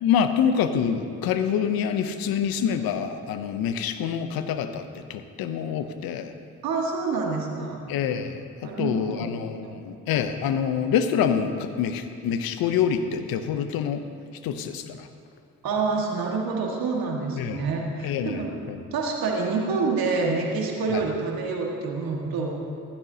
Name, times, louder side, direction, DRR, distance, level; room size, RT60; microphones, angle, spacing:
voice 1, 0.0-6.3 7.9-14.0 14.4-15.1 17.4-17.7 18.0-18.8 20.9-21.0, left 8 dB, 80° left, 9 dB, 0.7 m, -26 dB
voice 2, 6.6-7.8 8.6-9.3 9.6-9.8 15.6-18.5 18.9-22.6, right 4 dB, 75° right, 0 dB, 1.8 m, -27 dB
15.0 x 11.5 x 2.8 m, 2.3 s
supercardioid pair, 50°, 35 cm